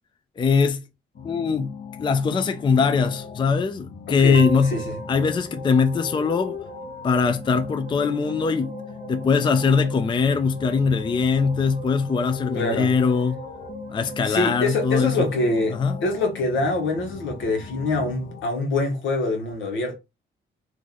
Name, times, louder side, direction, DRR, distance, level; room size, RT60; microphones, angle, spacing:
voice 1, 0.4-0.8 1.2-1.7 2.0-4.8 5.1-6.6 7.0-8.8 9.1-13.4 13.9-15.3 15.7-16.0, left 5 dB, 25° left, 0.4 m, -21 dB
sound 1, 1.1-18.4, left 6 dB, 50° left, 1.1 m, -40 dB
voice 2, 4.2-5.0 12.5-12.9 14.2-20.0, left 2 dB, 75° left, 1.2 m, -25 dB
sound 2, 4.3-16.6, right 2 dB, 45° right, 0.6 m, -40 dB
3.1 x 2.5 x 3.9 m
cardioid pair, 90°, 20 cm